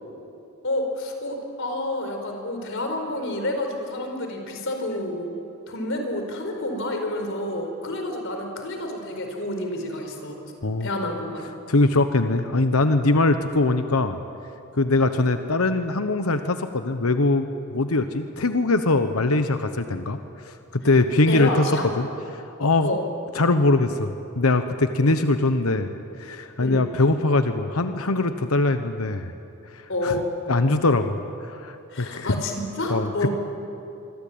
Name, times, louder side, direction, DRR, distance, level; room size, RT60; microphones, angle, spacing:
voice 1, 0.6-5.3 5.7-10.4 10.8-11.5 21.3-21.9 22.8-23.0 26.6-26.8 29.9-30.3 31.9-33.3, left 1 dB, 60° left, 4 dB, 4.8 m, -29 dB
voice 2, 11.7-14.2 14.8-20.2 20.4-21.7 22.0-22.9 23.3-29.3 29.7-30.1 30.5-32.3 32.9-33.1, left 2 dB, 90° left, 8 dB, 1.1 m, -22 dB
26.5 x 24.0 x 8.8 m, 2.7 s
head